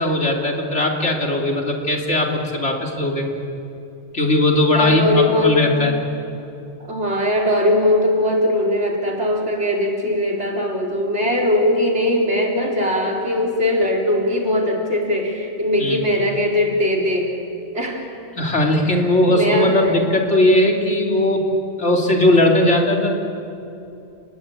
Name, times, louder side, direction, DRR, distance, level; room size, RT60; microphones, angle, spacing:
voice 1, 0.0-3.3 4.1-6.0 15.8-16.0 18.3-21.5 21.8-23.2, left 1 dB, 70° left, 0 dB, 3.4 m, -18 dB
voice 2, 4.7-5.9 6.9-17.3 17.7-18.1 18.9-19.0 19.3-19.8, left 1 dB, 70° right, -1 dB, 4.2 m, -20 dB
29.5 x 20.5 x 8.7 m, 2.7 s
omnidirectional pair, 1.2 m